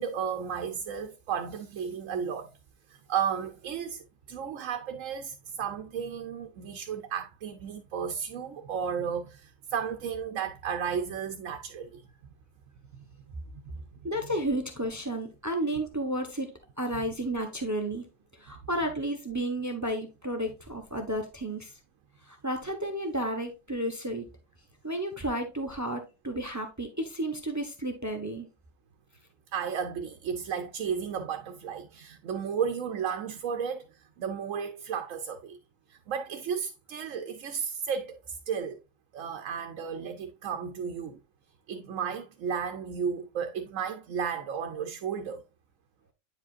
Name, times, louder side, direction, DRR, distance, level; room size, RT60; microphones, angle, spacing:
voice 1, 0.0-2.6 2.9-12.0 12.9-13.0 13.5-13.8 29.5-35.6 35.9-38.8 39.1-41.2 41.7-45.4, right 7 dB, 90° right, 1.0 m, -33 dB
voice 2, 14.0-18.0 18.4-21.7 22.2-24.3 24.8-28.5, right 1 dB, 15° right, 0.9 m, -32 dB
9.3 x 4.9 x 2.4 m
omnidirectional pair, 1.3 m